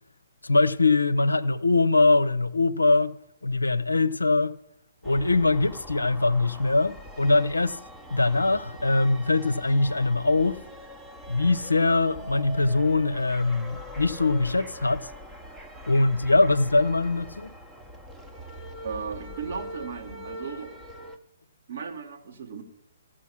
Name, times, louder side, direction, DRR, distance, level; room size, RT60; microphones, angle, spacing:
voice 1, 0.4-3.1 3.4-4.5 5.0-7.8 8.1-10.6 11.3-15.1 15.9-17.6, left 3 dB, 80° left, 0.6 m, -22 dB
sound 1, 5.0-21.2, equal, 5° right, 0.9 m, -43 dB
voice 2, 18.8-20.7 21.7-22.6, right 5 dB, 55° right, 1.8 m, -36 dB
14.5 x 6.2 x 6.1 m
figure-of-eight pair, 125°, 0 cm